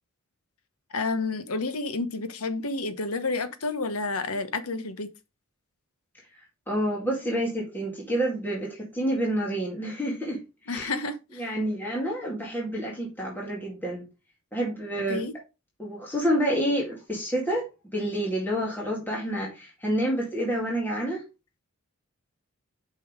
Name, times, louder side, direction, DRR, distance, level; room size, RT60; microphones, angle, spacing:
voice 1, 0.9-5.1 10.7-11.4 15.1-15.3, left 3 dB, 80° left, 1.1 m, -30 dB
voice 2, 6.3-11.0 11.3-14.1 14.5-15.2 15.8-21.3, equal, 10° left, 2.0 m, -29 dB
6.4 x 5.5 x 4.9 m
head